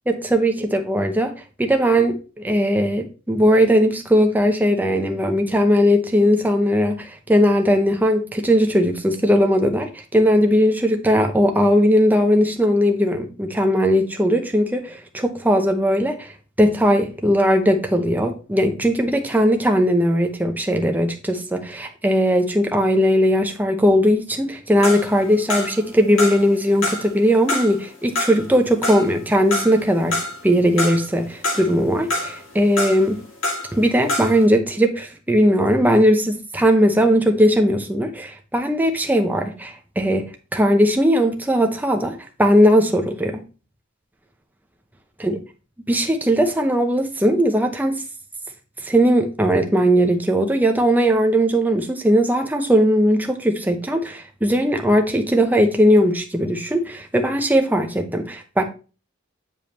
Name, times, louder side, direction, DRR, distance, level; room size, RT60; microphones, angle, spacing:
voice 1, 0.1-1.3 1.6-2.2 2.4-16.3 16.6-33.2 33.7-43.4 45.2-45.4 45.9-48.0 48.8-58.6, equal, 10° right, 0.7 m, -18 dB
sound 1, 24.8-25.9 26.2-27.1 27.5-30.5 30.8-31.8 32.1-33.8 34.0-34.4, left 2 dB, 70° left, 2.2 m, -26 dB
8.7 x 5.2 x 3.0 m
head